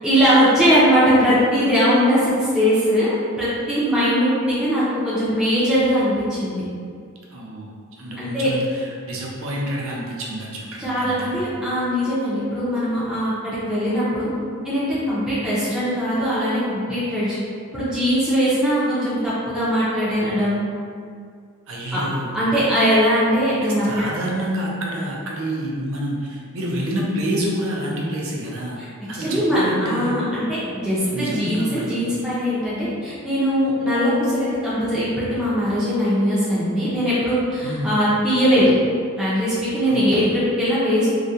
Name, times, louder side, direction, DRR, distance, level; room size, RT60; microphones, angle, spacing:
voice 1, 0.0-6.6 8.2-8.5 10.8-14.3 14.6-17.4 17.7-20.6 21.9-22.0 22.3-23.9 28.8-28.9 29.2-38.7 39.2-41.1, equal, 5° right, -12 dB, 0.5 m, -20 dB
voice 2, 7.3-7.7 8.0-11.5 21.7-22.4 23.6-28.8 29.1-30.2 31.1-32.1 37.6-38.1 39.9-40.3, right 1 dB, 65° right, -3 dB, 0.5 m, -28 dB
2.3 x 2.1 x 2.7 m, 2.2 s
head